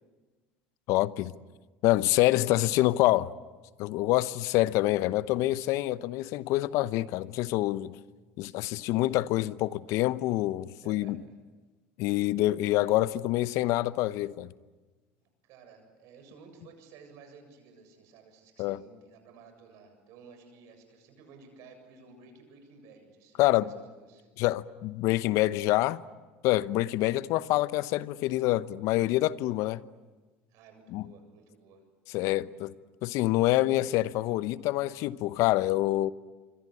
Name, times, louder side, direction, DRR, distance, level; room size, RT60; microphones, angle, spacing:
voice 1, 0.9-1.3 1.8-3.3 3.8-8.0 8.4-11.2 12.0-14.5 18.6-18.8 23.4-23.7 24.4-26.0 26.4-29.8 30.9-31.1 32.1-32.7 33.0-36.1, left 17 dB, 65° left, 0.9 m, -26 dB
voice 2, 10.8-11.3 15.4-24.3 30.5-31.8, right 5 dB, 65° right, 7.6 m, -54 dB
26.0 x 25.5 x 8.5 m
hypercardioid pair, 80°, 6 cm